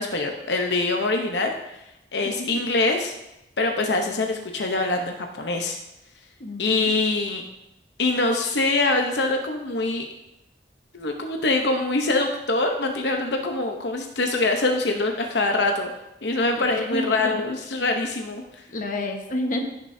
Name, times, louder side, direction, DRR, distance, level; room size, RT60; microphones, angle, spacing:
voice 1, 0.0-1.8 2.1-3.1 3.6-5.8 6.6-7.4 8.0-10.1 10.9-15.9 16.2-18.6, left 2 dB, 80° left, 3 dB, 0.8 m, -24 dB
voice 2, 2.2-2.6 6.4-6.9 16.6-17.3 18.7-19.6, left 1 dB, 45° left, 3 dB, 1.2 m, -30 dB
15.5 x 6.7 x 2.7 m, 0.90 s
head